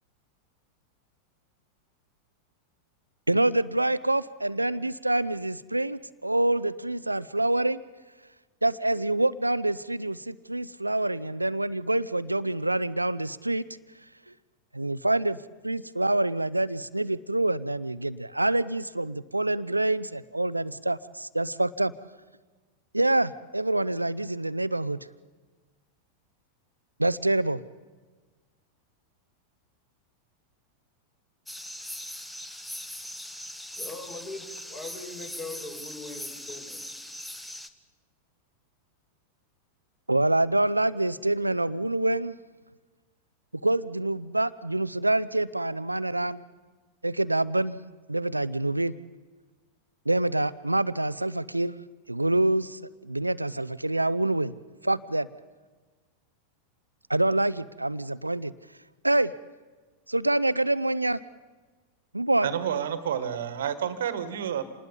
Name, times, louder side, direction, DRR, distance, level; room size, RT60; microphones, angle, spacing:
voice 1, 3.3-7.8 8.6-13.6 14.7-15.4 15.6-21.9 22.9-25.0 27.0-27.6 40.1-42.4 43.6-46.4 47.0-47.8 48.1-48.9 50.1-51.7 52.1-54.5 54.8-55.3 57.1-58.5 59.0-59.3 60.1-61.2 62.1-62.5, right 2 dB, 85° right, 17 dB, 0.5 m, -26 dB
sound 1, 31.5-37.7, left 1 dB, 5° left, 1.1 m, -40 dB
voice 2, 33.8-36.8, left 2 dB, 30° left, 2 dB, 5.4 m, -40 dB
voice 3, 62.4-64.6, right 9 dB, 60° right, 14 dB, 1.5 m, -29 dB
27.5 x 20.0 x 5.4 m, 1.4 s
figure-of-eight pair, 90°, 0 cm